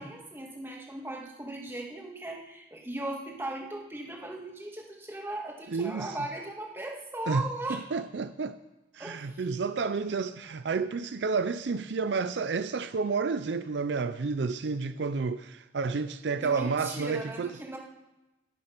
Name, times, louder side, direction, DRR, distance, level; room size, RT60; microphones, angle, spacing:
voice 1, 0.0-7.8 9.0-9.4 16.4-17.8, right 1 dB, 15° right, -1 dB, 2.0 m, -38 dB
voice 2, 5.7-6.2 7.3-7.4 7.7-8.6 8.9-17.5, right 4 dB, 70° right, 12 dB, 0.5 m, -30 dB
19.0 x 6.6 x 5.9 m, 0.99 s
head